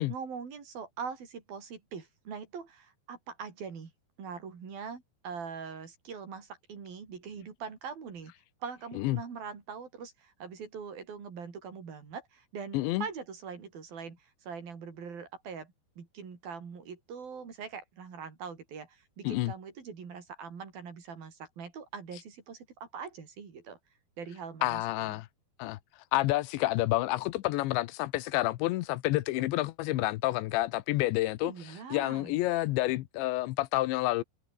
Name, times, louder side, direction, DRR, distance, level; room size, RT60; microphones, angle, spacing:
voice 1, 0.0-3.9 4.2-8.3 8.6-23.8 24.2-24.8 25.1-25.2 31.4-32.4, right 6 dB, 55° right, 5.9 m, -42 dB
voice 2, 12.7-13.1 19.2-19.5 24.6-25.3 25.6-25.8 26.1-31.5 31.9-34.2, left 18 dB, 85° left, 3.2 m, -29 dB
omnidirectional pair, 5.1 m